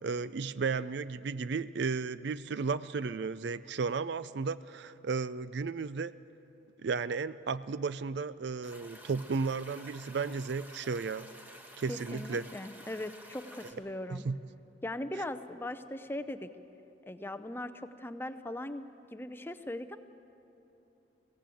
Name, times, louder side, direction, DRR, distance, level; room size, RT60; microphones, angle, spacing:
voice 1, 0.0-6.1 6.8-11.3 11.8-12.5 14.1-14.4, right 4 dB, 60° right, 16 dB, 0.4 m, -34 dB
sound 1, 8.6-13.7, equal, 10° right, 1.3 m, -51 dB
voice 2, 11.9-14.2 14.8-16.5 17.1-20.0, left 1 dB, 10° left, 10 dB, 0.6 m, -39 dB
22.5 x 16.5 x 7.7 m, 2.9 s
head